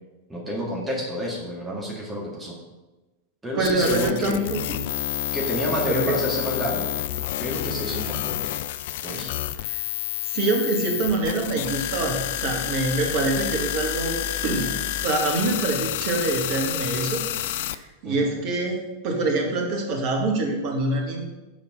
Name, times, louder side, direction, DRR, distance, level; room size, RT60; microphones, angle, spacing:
voice 1, 0.3-2.6 3.4-4.4 5.3-6.9 7.4-8.4 9.0-9.3 18.0-18.3, equal, 10° right, -4 dB, 2.1 m, -29 dB
sound 1, 3.6-17.8, left 13 dB, 55° left, 0.3 m, -29 dB
voice 2, 3.6-4.8 5.9-6.2 9.1-9.3 10.3-14.2 14.4-14.7 15.0-17.2 17.5-21.2, right 2 dB, 40° right, 1 dB, 1.8 m, -25 dB
7.2 x 5.2 x 5.4 m, 1.1 s
figure-of-eight pair, 90°, 0 cm